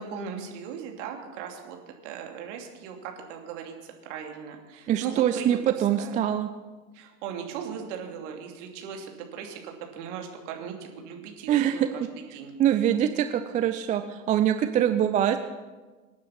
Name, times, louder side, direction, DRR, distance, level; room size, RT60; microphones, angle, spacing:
voice 1, 0.0-1.8 2.0-6.2 6.9-12.1 12.3-12.5, right 7 dB, 50° right, 3 dB, 3.0 m, -38 dB
voice 2, 4.9-6.5 11.5-11.9 12.6-15.4, right 10 dB, 15° right, 9 dB, 0.5 m, -24 dB
25.0 x 9.5 x 5.9 m, 1.3 s
figure-of-eight pair, 85°, 46 cm